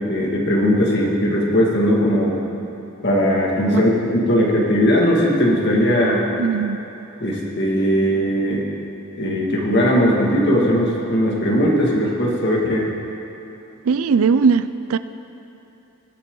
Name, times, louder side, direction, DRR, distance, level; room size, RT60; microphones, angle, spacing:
voice 1, 0.0-2.3 3.0-6.2 7.2-8.6 9.2-12.9, equal, 50° left, -3 dB, 2.1 m, -18 dB
voice 2, 6.4-6.8 13.9-15.0, right 5 dB, 80° right, 13 dB, 0.4 m, -18 dB
21.0 x 8.3 x 3.9 m, 3.0 s
head